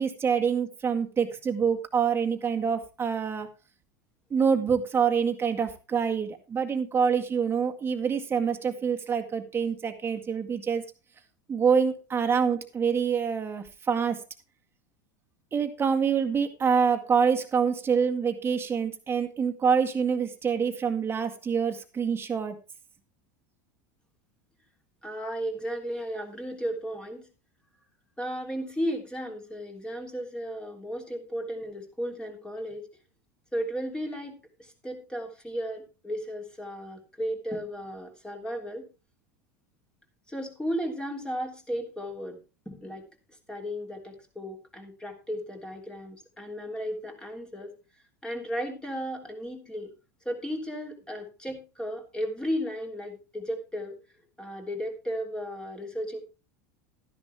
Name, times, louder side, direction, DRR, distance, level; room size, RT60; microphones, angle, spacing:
voice 1, 0.0-3.5 4.3-10.8 11.5-14.2 15.5-22.6, right 6 dB, 25° right, 5 dB, 1.9 m, -26 dB
voice 2, 25.0-27.3 28.2-32.8 33.5-38.9 40.3-42.4 42.6-43.0 43.5-47.7 48.2-49.9 50.2-54.0 54.4-56.2, equal, 10° left, 3 dB, 3.3 m, -34 dB
12.5 x 10.5 x 3.4 m, 0.29 s
hypercardioid pair, 105°, 10 cm